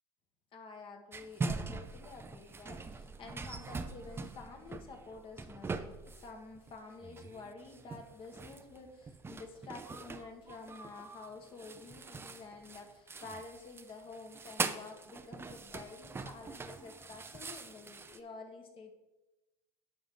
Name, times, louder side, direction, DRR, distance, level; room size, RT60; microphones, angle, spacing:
voice 1, 0.5-18.9, left 3 dB, 40° left, 3 dB, 1.7 m, -50 dB
sound 1, 1.1-6.8 7.0-18.2, right 4 dB, 15° right, 0.6 m, -42 dB
10.5 x 6.8 x 3.9 m, 1.0 s
supercardioid pair, 105°, 14 cm